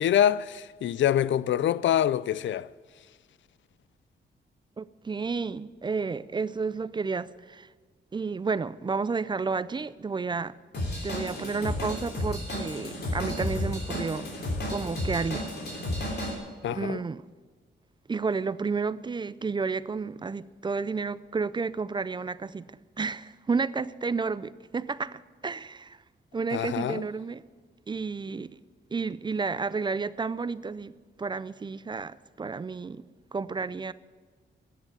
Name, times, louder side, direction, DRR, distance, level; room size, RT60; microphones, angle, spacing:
voice 1, 0.0-2.7 16.6-17.0 26.5-27.0, left 10 dB, 80° left, 0.4 m, -25 dB
voice 2, 4.8-7.7 8.1-10.6 11.0-14.3 14.7-15.5 16.0-16.4 16.7-17.2 18.1-22.7 23.0-26.0 26.3-27.4 27.9-28.5 28.9-30.9 31.2-33.0 33.3-33.9, right 4 dB, 25° right, 0.3 m, -31 dB
Drum kit / Drum, 10.7-16.3, left 1 dB, 60° left, 3.2 m, -32 dB
13.5 x 9.7 x 8.0 m
wide cardioid pair, 135°, 19 cm